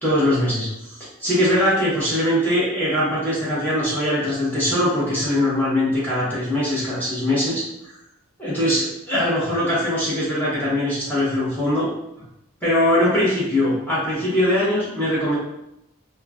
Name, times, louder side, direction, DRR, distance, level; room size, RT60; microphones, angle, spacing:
voice 1, 0.0-7.6 8.4-11.9 12.6-15.4, left 1 dB, 10° left, -9 dB, 0.8 m, -21 dB
3.0 x 2.2 x 2.4 m, 0.84 s
head